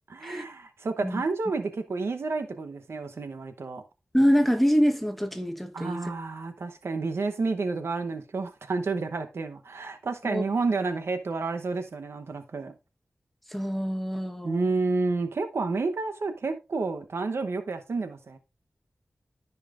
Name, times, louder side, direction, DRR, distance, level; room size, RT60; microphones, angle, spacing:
voice 1, 0.1-3.8 5.7-12.7 14.4-18.4, right 3 dB, 75° right, 0.9 m, -30 dB
voice 2, 4.1-6.0 10.2-10.4 13.5-14.7, equal, 5° left, 1.1 m, -25 dB
14.0 x 5.6 x 2.5 m
wide cardioid pair, 75°, 4 cm